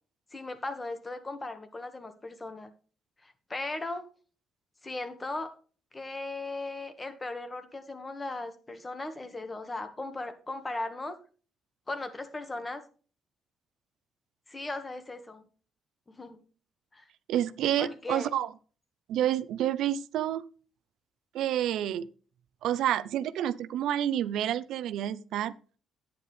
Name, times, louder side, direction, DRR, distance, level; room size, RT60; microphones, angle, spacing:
voice 1, 0.3-2.7 3.2-4.1 4.8-5.5 5.9-11.1 11.9-12.8 14.5-15.4 16.1-16.4 16.9-17.0 17.8-18.3, left 2 dB, 25° left, 1.7 m, -37 dB
voice 2, 17.3-18.5 19.1-20.4 21.3-22.1 22.6-25.5, right 11 dB, 85° right, 0.6 m, -29 dB
10.0 x 9.5 x 3.3 m
cardioid pair, 90°, 0 cm